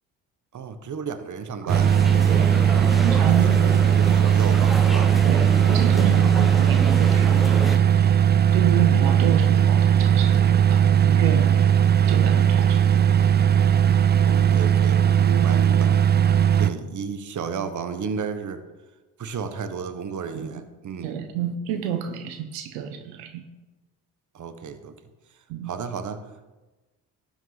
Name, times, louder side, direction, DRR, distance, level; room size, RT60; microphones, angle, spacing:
voice 1, 0.5-1.9 2.7-5.1 5.9-6.3 14.2-15.9 16.6-18.6 19.2-21.2 24.3-25.0 25.6-26.2, right 6 dB, 45° right, 10 dB, 1.2 m, -33 dB
sound 1, 1.7-7.8, equal, ahead, 0.9 m, -32 dB
sound 2, 1.7-16.7, right 9 dB, 25° right, 0.5 m, -18 dB
voice 2, 3.0-3.5 4.1-4.2 5.3-8.1 8.5-11.7 12.1-12.9 20.3-20.5 21.0-23.4 25.5-25.7, right 9 dB, 90° right, 8 dB, 1.0 m, -29 dB
12.5 x 8.8 x 4.0 m, 1.1 s
supercardioid pair, 65°, 41 cm